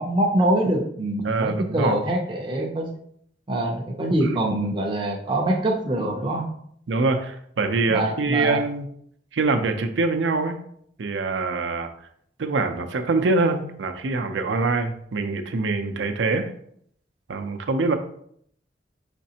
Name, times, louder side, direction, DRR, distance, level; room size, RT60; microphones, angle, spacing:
voice 1, 0.0-2.9 3.5-6.5 7.9-8.6, right 1 dB, 25° right, -1 dB, 0.5 m, -24 dB
voice 2, 1.2-1.9 4.2-4.4 6.9-8.9 9.3-10.6 11.0-11.9 12.4-16.5 17.3-18.0, right 3 dB, 80° right, 6 dB, 0.5 m, -24 dB
5.1 x 3.2 x 2.8 m, 0.66 s
head